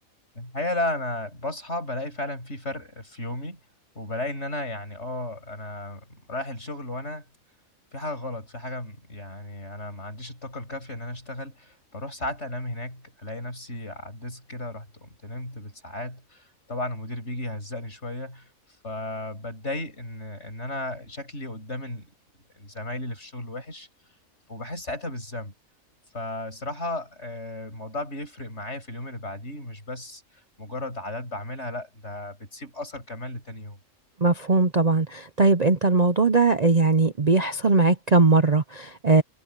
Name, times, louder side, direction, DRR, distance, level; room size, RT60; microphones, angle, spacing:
voice 1, 0.3-3.6 3.9-7.3 7.9-18.5 18.8-22.1 22.5-23.9 24.5-25.5 26.1-33.8, left 1 dB, 55° left, 8.1 m, -34 dB
voice 2, 34.2-39.2, right 3 dB, 35° right, 0.8 m, -20 dB
omnidirectional pair, 1.4 m